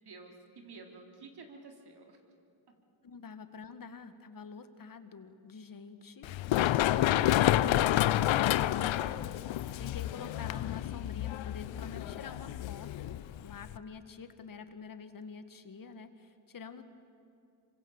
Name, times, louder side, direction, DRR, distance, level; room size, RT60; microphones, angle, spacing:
voice 1, 0.0-2.2, right 3 dB, 50° right, 3 dB, 4.1 m, -51 dB
voice 2, 3.0-6.3 6.7-9.4 9.8-16.8, left 5 dB, 45° left, 10 dB, 1.9 m, -47 dB
Run, 6.2-13.8, left 13 dB, 70° left, 0.8 m, -29 dB
26.5 x 24.5 x 8.2 m, 2.6 s
cardioid pair, 85°, 48 cm